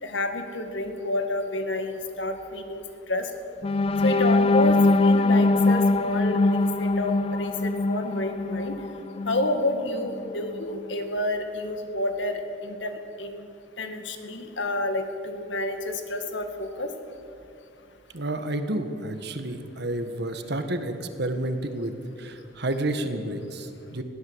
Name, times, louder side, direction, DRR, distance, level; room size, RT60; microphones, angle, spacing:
voice 1, 0.0-2.8 3.1-3.3 4.0-8.7 9.3-13.5 13.8-16.9, left 1 dB, 75° left, 7 dB, 2.1 m, -29 dB
sound 1, 3.6-9.6 10.0-10.2 10.6-10.8, left 2 dB, 30° left, 0.4 m, -22 dB
voice 2, 18.1-24.0, right 1 dB, 60° right, 8 dB, 1.8 m, -30 dB
21.0 x 16.0 x 8.1 m, 2.6 s
head